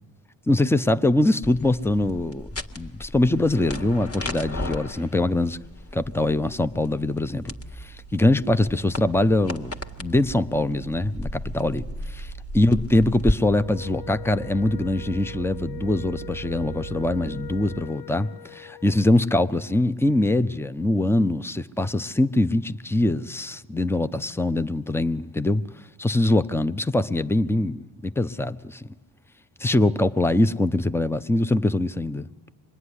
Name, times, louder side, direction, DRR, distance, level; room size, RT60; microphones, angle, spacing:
voice 1, 0.5-2.5 2.8-5.6 5.9-25.6 26.0-28.9 29.6-32.3, left 1 dB, 5° left, 0.9 m, -23 dB
sound 1, 1.4-13.3, left 1 dB, 30° left, 1.9 m, -35 dB
sound 2, 6.9-17.9, right 18 dB, 60° right, 0.8 m, -42 dB
Wind instrument woodwind instrument, 13.5-19.1, left 15 dB, 50° left, 0.8 m, -42 dB
25.5 x 21.0 x 10.0 m
supercardioid pair, 50°, 46 cm